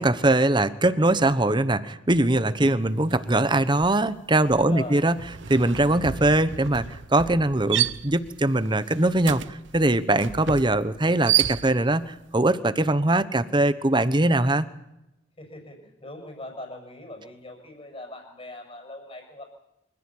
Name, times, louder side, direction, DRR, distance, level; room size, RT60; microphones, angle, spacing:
voice 1, 0.0-5.1 5.5-6.8 7.1-14.7, right 2 dB, 25° right, 13 dB, 1.1 m, -22 dB
sound 1, 3.0-3.3 3.6-12.1, right 11 dB, 80° right, 0.8 m, -31 dB
voice 2, 4.4-5.0 15.4-19.5, left 1 dB, 30° left, 4 dB, 6.2 m, -41 dB
25.5 x 15.0 x 8.8 m, 0.91 s
head